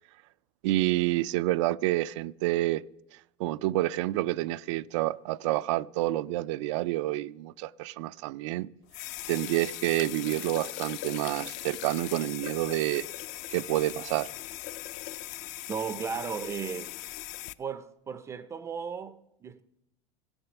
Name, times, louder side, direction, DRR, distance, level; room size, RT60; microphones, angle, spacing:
voice 1, 0.6-2.8 3.4-8.7 9.3-13.1 13.5-14.3, right 17 dB, 85° right, 0.4 m, -28 dB
sound 1, 8.9-17.5, left 16 dB, 50° left, 0.4 m, -40 dB
voice 2, 15.7-16.9 17.6-19.6, right 6 dB, 20° right, 0.4 m, -35 dB
16.0 x 7.9 x 6.9 m
cardioid pair, 160°, 15 cm